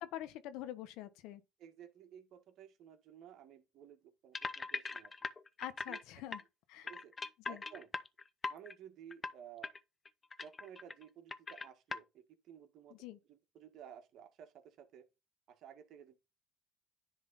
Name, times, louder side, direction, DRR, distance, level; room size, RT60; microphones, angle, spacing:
voice 1, 0.0-1.4 5.6-6.4 6.7-6.9 7.5-7.6 13.0-13.2, left 13 dB, 75° left, 1.1 m, -45 dB
voice 2, 1.6-5.1 5.9-6.0 6.8-7.1 7.4-7.9 8.5-9.7 10.4-13.0 13.3-15.0 15.5-16.2, right 9 dB, 65° right, 1.7 m, -55 dB
sound 1, 4.3-6.0 6.3-6.4 6.9-8.7 9.1-9.3 9.6-9.8 10.1-11.0 11.3-12.0, left 4 dB, 30° left, 0.7 m, -41 dB
10.5 x 3.7 x 4.2 m
supercardioid pair, 85°, 0 cm